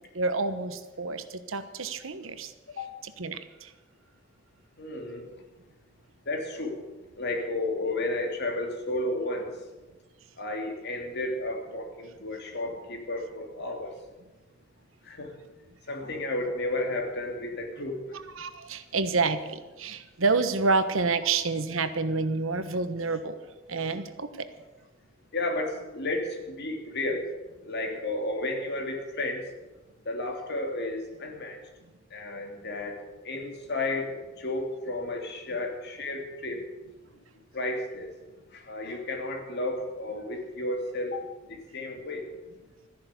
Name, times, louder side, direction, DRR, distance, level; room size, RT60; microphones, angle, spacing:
voice 1, 0.1-2.5 3.0-3.7 18.4-23.4 23.7-24.5 27.8-28.0, right 4 dB, 75° right, 11 dB, 1.2 m, -28 dB
voice 2, 4.8-5.3 6.3-6.8 7.2-9.6 10.4-13.9 15.0-15.3 15.9-18.0 25.3-27.3 27.6-29.5 30.0-31.6 32.1-36.6 37.5-38.1 38.5-42.3, left 2 dB, 55° left, 2 dB, 2.9 m, -32 dB
14.0 x 10.5 x 8.2 m, 1.1 s
head